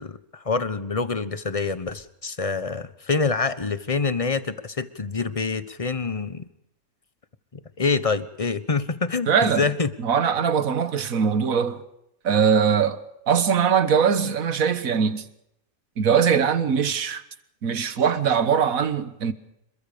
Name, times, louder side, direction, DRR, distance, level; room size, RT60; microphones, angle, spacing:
voice 1, 0.0-6.5 7.8-9.9, left 4 dB, 25° left, 1.2 m, -26 dB
voice 2, 9.3-9.7 10.0-11.8 12.2-13.0 13.3-15.2 16.0-17.2 17.6-19.3, right 7 dB, 70° right, 1.8 m, -21 dB
27.0 x 22.0 x 5.2 m
omnidirectional pair, 1.5 m